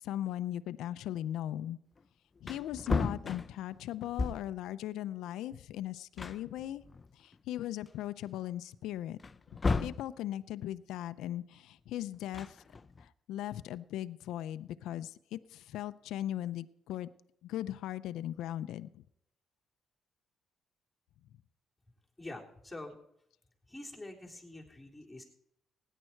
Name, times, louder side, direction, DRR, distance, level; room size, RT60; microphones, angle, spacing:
voice 1, 0.0-1.8 2.4-6.8 7.1-9.2 9.8-12.6 13.0-17.1 17.4-19.0, left 12 dB, 85° left, 13 dB, 0.5 m, -38 dB
Wood, 2.0-2.1 2.4-4.6 5.7-5.8 6.2-7.4 7.9-8.0 9.2-10.1 12.1-13.1, left 4 dB, 30° left, 0.6 m, -34 dB
voice 2, 22.2-23.0 23.7-25.2, left 2 dB, 5° left, -2 dB, 3.7 m, -46 dB
17.0 x 10.0 x 4.5 m, 0.76 s
cardioid pair, 90°, 0 cm